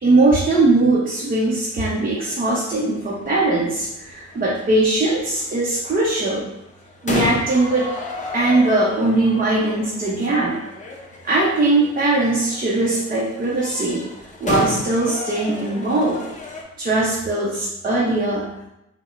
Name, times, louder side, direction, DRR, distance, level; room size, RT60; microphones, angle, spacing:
voice 1, 0.0-6.5 7.0-7.9 8.3-10.6 11.2-14.1 14.4-16.2 16.8-18.5, right 2 dB, 30° right, -5 dB, 0.7 m, -20 dB
sound 1, 1.9-16.6, left 2 dB, 25° left, 0.6 m, -33 dB
4.8 x 2.2 x 2.5 m, 0.88 s
cardioid pair, 90°, 30 cm